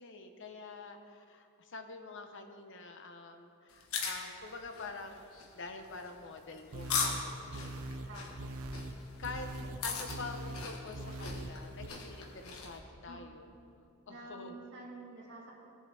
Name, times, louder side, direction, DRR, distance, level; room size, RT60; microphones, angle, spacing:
voice 1, 0.0-8.1 9.2-9.5 9.8-13.5 14.1-14.5, left 3 dB, 60° left, 6 dB, 0.9 m, -46 dB
sound 1, 3.7-12.8, left 5 dB, 80° left, 1.3 m, -40 dB
sound 2, 6.7-11.9, right 1 dB, 80° right, 0.6 m, -43 dB
voice 2, 8.1-8.4 9.6-9.7 13.1-13.2 14.1-15.5, right 2 dB, 60° right, -4 dB, 2.2 m, -49 dB
17.0 x 7.4 x 3.4 m, 2.6 s
head